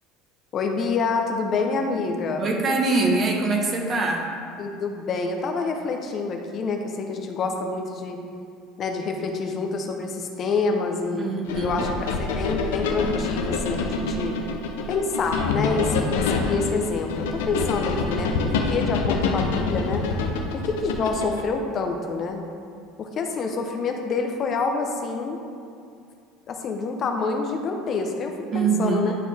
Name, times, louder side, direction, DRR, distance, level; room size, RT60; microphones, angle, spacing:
voice 1, 0.5-2.4 4.6-8.2 8.8-11.9 12.2-14.3 14.9-20.0 20.5-22.4 23.0-25.4 26.5-29.1, left 4 dB, 40° left, 3 dB, 0.8 m, -27 dB
voice 2, 2.4-4.3 11.2-11.8 28.5-29.1, right 3 dB, 35° right, 1 dB, 1.2 m, -23 dB
sound 1, 11.5-21.5, left 4 dB, 85° left, 0.7 m, -26 dB
10.5 x 4.3 x 3.5 m, 2.4 s
supercardioid pair, 105°, 0 cm